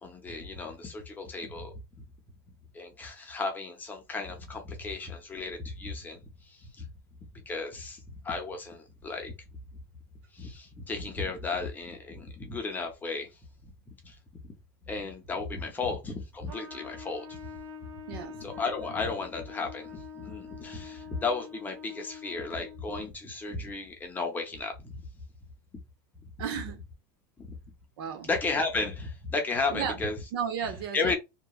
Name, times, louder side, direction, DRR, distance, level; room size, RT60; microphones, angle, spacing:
voice 1, 0.0-1.7 2.7-6.2 6.5-6.9 7.5-9.3 10.3-13.3 13.6-13.7 14.0-14.2 14.4-14.6 14.9-17.4 18.4-25.0 27.4-27.5 28.2-30.2 30.9-31.2, left 3 dB, 15° left, 0.6 m, -34 dB
Trumpet, 16.4-23.0, left 5 dB, 40° right, 1.3 m, -45 dB
voice 2, 18.1-18.4 26.4-26.8 28.0-28.3 29.7-30.0 30.3-31.2, right 7 dB, 70° right, 0.7 m, -33 dB
2.9 x 2.2 x 2.2 m
supercardioid pair, 155°, 13 cm